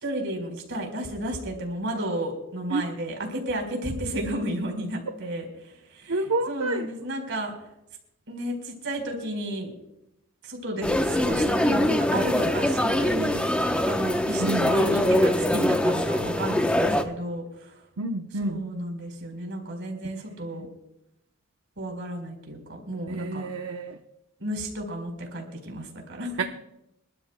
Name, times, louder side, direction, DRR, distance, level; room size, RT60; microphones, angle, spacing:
voice 1, 0.0-6.2 6.5-7.5 8.3-9.7 10.4-13.4 13.8-17.7 18.4-20.7 21.8-23.5 24.4-26.4, right 1 dB, 60° right, 2 dB, 4.2 m, -32 dB
voice 2, 6.1-6.9 14.4-14.7 18.0-18.6 20.1-20.3 20.6-20.7 23.1-24.0 26.4-26.5, right 2 dB, 80° right, 5 dB, 0.8 m, -29 dB
sound 1, 10.8-17.0, left 1 dB, 5° left, 0.8 m, -23 dB
27.0 x 13.0 x 2.2 m, 0.87 s
head